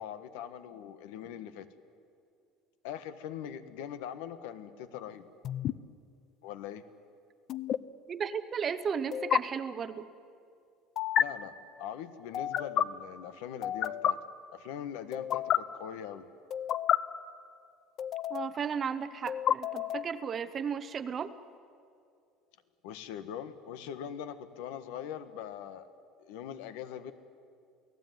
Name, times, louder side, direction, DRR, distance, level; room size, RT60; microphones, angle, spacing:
voice 1, 0.0-1.7 2.8-5.3 6.4-6.8 11.2-14.2 14.5-16.3 22.8-25.9 26.2-27.1, left 9 dB, 85° left, 11 dB, 1.5 m, -42 dB
sound 1, 5.4-5.7 7.5-7.8 9.1-9.4 11.0-11.2 12.3-12.8 13.6-14.1 15.1-15.6 16.5-17.0 18.0-18.6 19.3-20.1, left 10 dB, 35° left, 0.6 m, -29 dB
voice 2, 8.1-10.0 18.3-21.3, right 7 dB, 25° right, 13 dB, 0.8 m, -34 dB
28.5 x 17.5 x 9.4 m, 2.4 s
cardioid pair, 175°, 0 cm